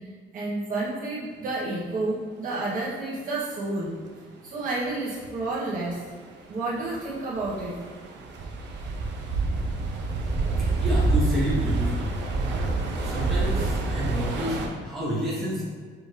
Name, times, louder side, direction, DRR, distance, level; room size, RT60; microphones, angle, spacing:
voice 1, 0.3-3.9 4.4-6.0 6.5-7.7, right 2 dB, 40° right, -7 dB, 1.2 m, -30 dB
sound 1, 4.6-4.7 5.2-5.4 5.7-14.7, right 3 dB, 60° right, 0.6 m, -27 dB
voice 2, 10.6-12.2 13.0-15.6, equal, ahead, -8 dB, 0.8 m, -29 dB
5.9 x 2.7 x 3.2 m, 1.5 s
cardioid pair, 165°, 21 cm